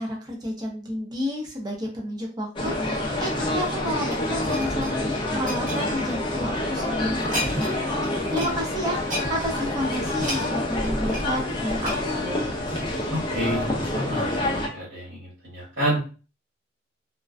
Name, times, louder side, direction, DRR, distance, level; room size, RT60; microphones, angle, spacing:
voice 1, 0.0-9.0 9.3-12.5, left 1 dB, 20° right, -1 dB, 0.6 m, -31 dB
sound 1, 2.6-14.7, left 1 dB, 25° left, 0.4 m, -27 dB
sound 2, 3.4-6.6 7.1-7.8 8.0-8.5 8.8-13.1 13.7-13.8, equal, 45° right, 1.0 m, -34 dB
voice 2, 13.1-16.0, equal, 85° right, -7 dB, 1.2 m, -29 dB
2.4 x 2.1 x 2.4 m, 0.35 s
head